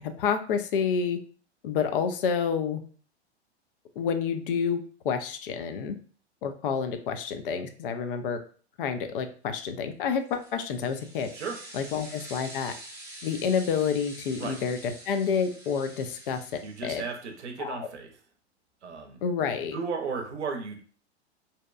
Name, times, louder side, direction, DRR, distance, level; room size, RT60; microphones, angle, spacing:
voice 1, 0.2-1.2 1.6-2.8 4.0-6.0 6.4-8.4 8.8-11.3 11.7-12.7 13.2-17.0 17.6-17.9 19.2-19.8, left 6 dB, 50° left, 8 dB, 0.4 m, -29 dB
sound 1, 10.2-17.2, right 1 dB, 10° right, 0.7 m, -46 dB
voice 2, 16.6-18.1 18.8-19.2 19.7-20.8, right 5 dB, 80° right, 3 dB, 0.6 m, -34 dB
2.7 x 2.1 x 2.3 m, 0.42 s
figure-of-eight pair, 100°, 34 cm